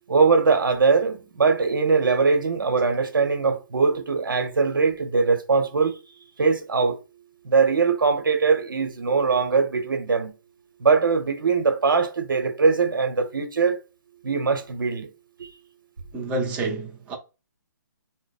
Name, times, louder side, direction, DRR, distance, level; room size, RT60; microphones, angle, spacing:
voice 1, 0.1-6.0 6.4-7.0 7.4-10.3 10.8-13.8 14.2-15.1 15.4-15.5, right 4 dB, 85° right, 1.0 m, -21 dB
voice 2, 16.1-17.2, right 2 dB, 15° right, 0.7 m, -28 dB
2.9 x 2.1 x 4.1 m
hypercardioid pair, 155°, 11 cm